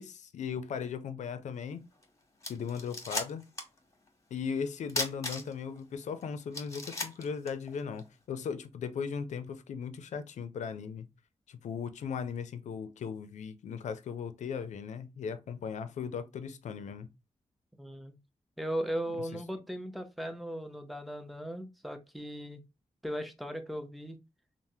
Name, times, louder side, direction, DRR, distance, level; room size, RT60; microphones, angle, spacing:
voice 1, 0.0-1.9 2.5-3.4 4.3-11.1 11.5-17.1 19.1-19.2, left 6 dB, 90° left, 0.4 m, -37 dB
sound 1, 2.0-2.1 2.4-3.8 4.1-4.2 4.9-5.8 6.2-6.3 6.5-8.1, left 2 dB, 25° left, 0.9 m, -36 dB
voice 2, 17.8-18.2 18.6-22.6 23.0-24.2, equal, ahead, 0.6 m, -37 dB
3.3 x 2.0 x 2.7 m
cardioid pair, 70°, 12 cm